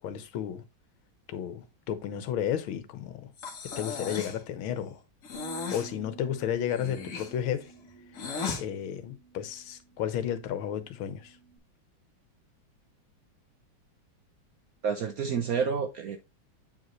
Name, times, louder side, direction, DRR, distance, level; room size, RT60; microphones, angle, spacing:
voice 1, 0.0-0.6 1.3-3.3 3.8-5.0 5.7-7.7 8.6-11.4, left 9 dB, 85° left, 1.7 m, -33 dB
Breathing, 3.4-4.4 5.2-5.9 6.7-8.6, left 5 dB, 45° left, 1.4 m, -36 dB
Bass guitar, 5.3-11.6, right 5 dB, 25° left, 1.9 m, -52 dB
voice 2, 14.8-16.2, right 6 dB, 65° right, 0.9 m, -29 dB
8.4 x 5.0 x 3.1 m
omnidirectional pair, 2.2 m